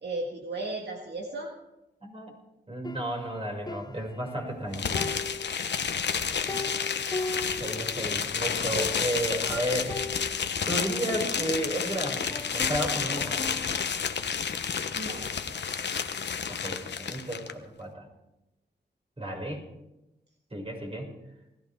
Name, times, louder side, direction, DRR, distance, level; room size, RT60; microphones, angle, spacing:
voice 1, 0.0-1.5 6.2-6.8 14.9-15.3, right 2 dB, 70° right, 0 dB, 2.1 m, -36 dB
voice 2, 2.0-2.3 2.7-5.0 7.5-10.3 10.6-13.6 16.5-18.1 19.2-19.6 20.5-21.1, right 1 dB, 30° right, 0 dB, 6.0 m, -33 dB
sound 1, 2.8-4.6 4.9-8.2 8.5-8.6 8.8-9.4 9.9-11.9 12.3-14.0, left 3 dB, 20° left, 0.6 m, -39 dB
sound 2, 4.7-17.5, left 6 dB, 80° left, 1.0 m, -30 dB
20.0 x 15.0 x 3.5 m, 0.93 s
cardioid pair, 50°, 18 cm